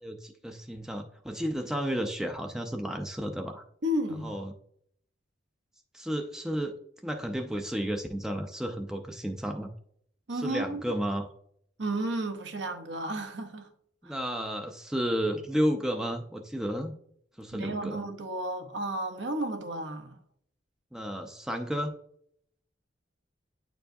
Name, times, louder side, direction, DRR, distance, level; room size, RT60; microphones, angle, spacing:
voice 1, 0.0-3.6 4.2-4.5 5.9-6.7 7.0-9.7 10.3-11.3 14.0-16.9 17.4-18.0 20.9-21.9, equal, 5° right, 0.4 m, -32 dB
voice 2, 3.8-4.3 10.3-10.8 11.8-13.7 14.0-14.2 17.5-20.2, right 1 dB, 70° right, 0.9 m, -32 dB
9.0 x 4.5 x 2.6 m
head